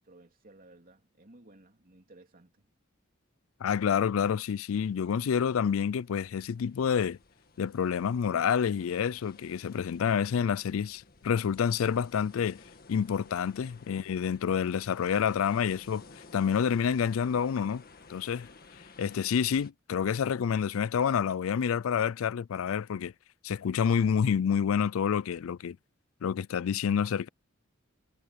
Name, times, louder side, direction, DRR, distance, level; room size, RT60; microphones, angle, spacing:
voice 1, 0.0-2.7 13.8-13.9, right 2 dB, 45° right, 3.2 m, -57 dB
voice 2, 3.6-7.2 7.6-12.6 12.9-16.0 16.3-17.8 18.1-18.5 19.0-23.1 23.4-25.8 26.2-27.3, left 7 dB, 80° left, 0.4 m, -28 dB
sound 1, 4.3-19.7, left 3 dB, 45° left, 1.7 m, -56 dB
head